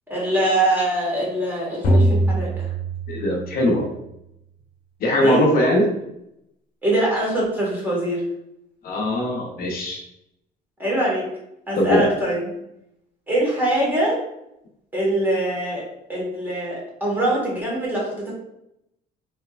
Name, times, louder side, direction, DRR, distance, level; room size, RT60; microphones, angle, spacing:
voice 1, 0.1-2.7 5.2-5.4 6.8-8.2 10.8-11.2 11.7-12.4 13.3-14.2 14.9-15.8 16.1-18.3, right 1 dB, 10° right, -5 dB, 1.4 m, -23 dB
sound 1, 1.8-3.8, right 1 dB, 90° left, 1.0 m, -21 dB
voice 2, 3.1-3.9 5.0-5.9 8.8-10.0 11.8-12.1, left 1 dB, 60° left, 0 dB, 0.8 m, -20 dB
3.2 x 2.9 x 2.4 m, 0.81 s
cardioid pair, 110°, 17 cm